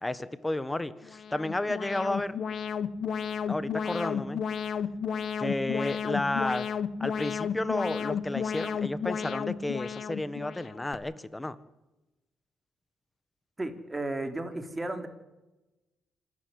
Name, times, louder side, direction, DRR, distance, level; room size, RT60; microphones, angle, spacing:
voice 1, 0.0-2.4 3.5-4.4 5.4-6.7 7.0-11.5, left 2 dB, 15° left, 15 dB, 1.5 m, -32 dB
Alarm, 1.0-10.9, left 7 dB, 60° left, 1.3 m, -33 dB
voice 2, 13.6-15.1, right 2 dB, 15° right, 7 dB, 3.5 m, -34 dB
26.5 x 12.0 x 9.6 m, 1.0 s
cardioid pair, 90°, 0 cm